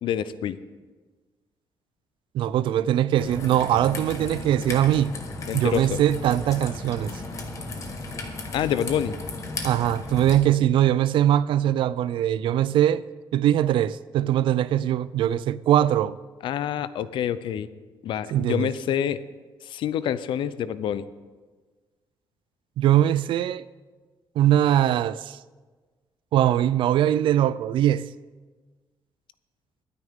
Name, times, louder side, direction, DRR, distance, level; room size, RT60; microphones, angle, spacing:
voice 1, 0.0-0.6 5.5-6.0 8.5-9.1 16.4-17.7 18.0-19.2 19.7-21.0, left 9 dB, 90° left, 0.6 m, -27 dB
voice 2, 2.3-5.1 5.5-7.2 9.6-13.0 13.3-16.2 18.3-18.7 22.8-23.6 24.4-25.4 26.3-28.1, right 11 dB, 85° right, 0.4 m, -21 dB
Raindrop / Trickle dribble, 3.2-10.4, left 2 dB, 40° left, 1.4 m, -35 dB
21.5 x 9.6 x 3.6 m
wide cardioid pair, 180°, 8 cm